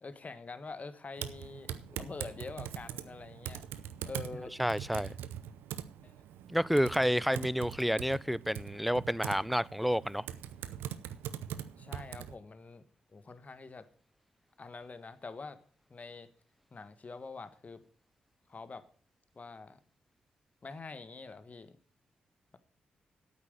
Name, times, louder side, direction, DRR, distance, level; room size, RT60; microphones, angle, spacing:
voice 1, 0.0-3.7 4.0-4.5 6.0-6.3 7.3-7.4 11.8-12.8 13.1-13.9 14.6-15.6 15.9-16.3 16.7-17.8 18.5-18.8 19.3-19.8 20.6-21.8, left 4 dB, 40° left, 1.4 m, -45 dB
Typing, 1.2-12.3, right 10 dB, 80° right, 0.7 m, -43 dB
voice 2, 4.6-5.2 6.5-10.3, equal, ahead, 0.4 m, -29 dB
8.8 x 8.5 x 6.6 m
hypercardioid pair, 40°, 4 cm